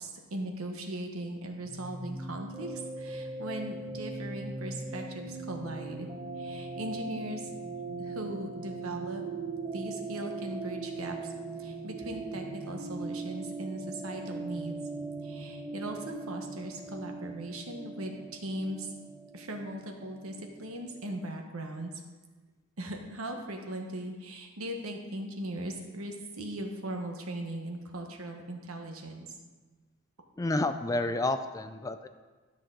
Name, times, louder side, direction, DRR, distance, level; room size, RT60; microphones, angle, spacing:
voice 1, 0.0-6.1 6.4-7.5 8.0-9.2 9.7-11.3 11.6-14.8 15.2-18.9 19.3-21.9 22.8-29.3, right 1 dB, 80° right, 3 dB, 1.2 m, -39 dB
sound 1, 1.6-21.1, right 3 dB, 35° right, 2.4 m, -40 dB
voice 2, 30.4-32.1, left 2 dB, 15° left, 9 dB, 0.3 m, -30 dB
12.5 x 6.2 x 3.8 m, 1.3 s
head